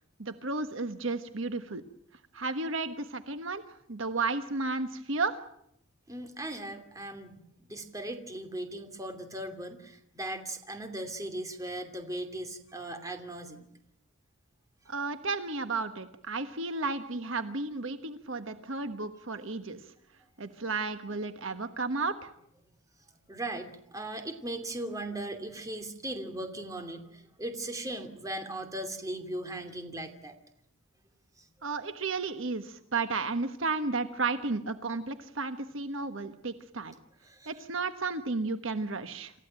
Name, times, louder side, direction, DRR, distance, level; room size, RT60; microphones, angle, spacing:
voice 1, 0.2-1.8 2.3-3.6 3.9-5.4 14.9-19.8 20.4-22.3 31.6-36.9 37.5-39.3, right 3 dB, 65° right, 9 dB, 1.3 m, -33 dB
voice 2, 6.1-13.7 23.2-30.3 31.4-31.5 37.2-37.5, right 1 dB, 15° right, 6 dB, 2.8 m, -38 dB
28.5 x 15.0 x 9.0 m, 0.75 s
head